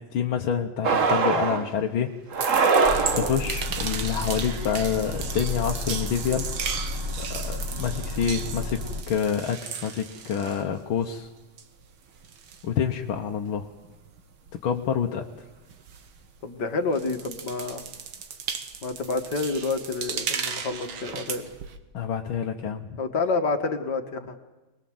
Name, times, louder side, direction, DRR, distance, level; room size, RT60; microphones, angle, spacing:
voice 1, 0.1-2.1 3.1-6.5 7.2-11.3 12.6-13.7 14.6-15.3 21.9-22.9, left 8 dB, 80° left, 2 dB, 1.9 m, -27 dB
sound 1, 0.8-1.7 2.3-3.5, right 4 dB, 45° right, 1.5 m, -22 dB
sound 2, 2.3-11.2 11.5-16.6 16.9-21.8, right 7 dB, 80° right, 2.2 m, -36 dB
sound 3, 2.8-9.0, left 2 dB, 10° right, 2.8 m, -33 dB
voice 2, 16.4-17.8 18.8-21.5 23.0-24.4, left 3 dB, 55° left, 7 dB, 2.1 m, -28 dB
24.0 x 21.0 x 7.8 m, 1.1 s
omnidirectional pair, 2.2 m